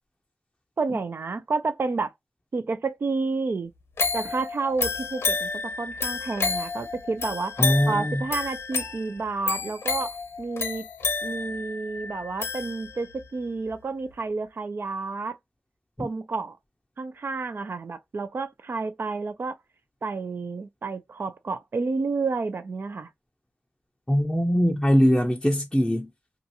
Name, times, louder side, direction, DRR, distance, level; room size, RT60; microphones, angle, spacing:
voice 1, 0.8-2.1 2.5-3.7 4.1-7.5 7.9-10.9 11.2-15.4 16.0-16.6 17.0-19.6 20.0-23.1, right 4 dB, 60° right, 0.5 m, -30 dB
sound 1, 4.0-13.2 13.7-13.8, left 4 dB, 85° left, 0.7 m, -30 dB
voice 2, 7.6-8.2 16.0-16.1 24.1-26.1, equal, 10° left, 0.5 m, -22 dB
2.5 x 2.4 x 2.7 m
cardioid pair, 60°, 4 cm